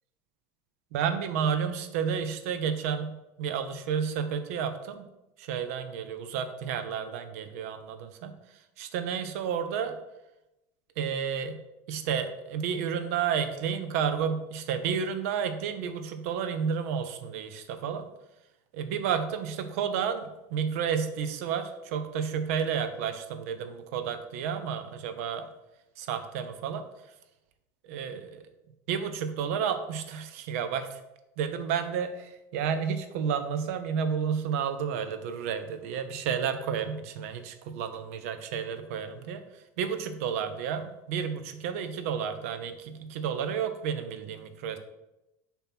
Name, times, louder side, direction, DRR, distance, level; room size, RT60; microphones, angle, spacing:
voice 1, 0.9-5.1 5.4-8.4 8.8-10.0 11.0-11.6 11.9-18.1 18.7-25.5 26.0-26.8 27.8-28.4 28.9-31.0 31.4-39.4 39.8-44.8, right 7 dB, 75° right, 9 dB, 0.7 m, -31 dB
6.9 x 3.0 x 5.9 m, 0.93 s
cardioid pair, 180°, 8 cm